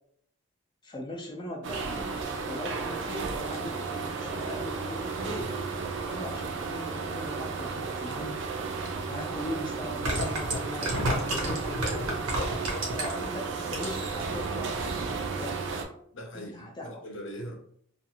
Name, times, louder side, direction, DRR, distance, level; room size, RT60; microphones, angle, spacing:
voice 1, 0.8-2.1 2.4-5.5 6.1-8.4 9.1-10.9 11.4-12.2 12.9-15.6 16.3-17.0, left 1 dB, 20° left, 0 dB, 0.3 m, -39 dB
sound 1, 1.6-15.8, right 4 dB, 55° right, 0.4 m, -34 dB
sound 2, 8.9-9.0 9.8-13.3 13.6-14.1 14.4-14.5, right 1 dB, 75° right, 0.8 m, -30 dB
voice 2, 16.1-17.5, equal, 55° left, 2 dB, 0.6 m, -40 dB
2.4 x 2.3 x 2.8 m, 0.66 s
head